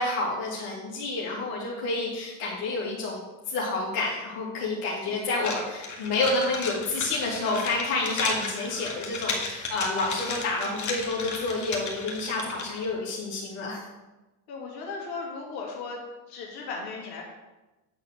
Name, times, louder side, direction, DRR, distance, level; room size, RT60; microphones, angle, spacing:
voice 1, 0.0-13.8, left 2 dB, 75° left, -5 dB, 2.7 m, -29 dB
sound 1, 5.4-12.9, left 4 dB, 40° left, 2.0 m, -34 dB
voice 2, 14.5-16.0 16.3-17.2, left 4 dB, 60° left, -3 dB, 2.9 m, -36 dB
9.5 x 4.0 x 6.5 m, 1.1 s
supercardioid pair, 95°, 44 cm